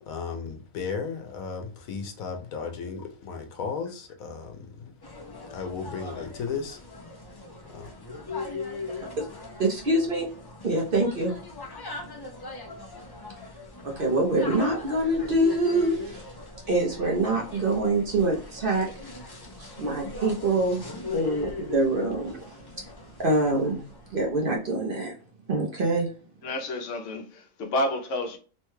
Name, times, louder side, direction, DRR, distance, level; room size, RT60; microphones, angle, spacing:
voice 1, 0.0-4.9 5.5-6.8 7.7-7.9, left 5 dB, 90° left, 1.1 m, -35 dB
sound 1, 5.0-24.3, left 3 dB, 40° left, 0.3 m, -39 dB
voice 2, 9.2-10.3 10.6-11.3 13.8-16.3 16.7-18.9 19.6-20.8 21.1-22.4 22.7-22.8 23.2-23.8 24.1-25.1 25.5-26.1, right 2 dB, 50° right, 0.7 m, -25 dB
voice 3, 26.4-28.4, left 1 dB, 65° left, 1.0 m, -30 dB
3.1 x 2.2 x 3.0 m
omnidirectional pair, 1.4 m